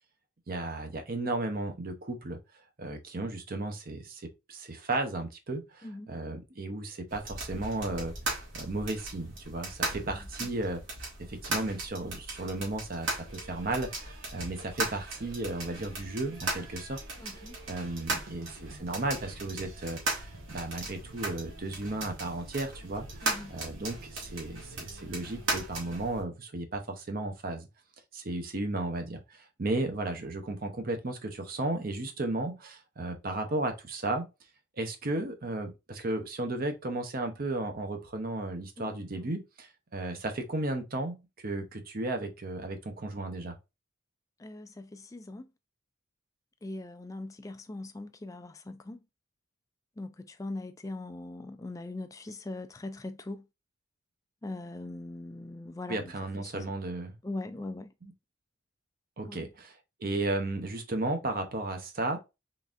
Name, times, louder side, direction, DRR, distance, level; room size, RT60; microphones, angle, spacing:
voice 1, 0.5-2.4 2.8-8.1 8.5-10.8 11.2-27.7 28.1-34.3 34.8-43.6 55.9-57.2 58.0-58.1 59.2-62.2, right 2 dB, 45° right, 0.7 m, -34 dB
voice 2, 5.8-6.1 10.1-10.2 17.2-17.6 23.2-23.6 38.8-39.3 44.4-45.5 46.6-49.0 50.0-53.4 54.4-56.1 56.4-56.7 57.2-57.9 59.3-59.5, left 2 dB, 15° left, 0.3 m, -41 dB
sound 1, 7.1-26.2, right 2 dB, 65° right, 1.8 m, -38 dB
sound 2, 13.3-26.0, right 2 dB, 90° right, 1.4 m, -51 dB
3.9 x 3.5 x 2.4 m
head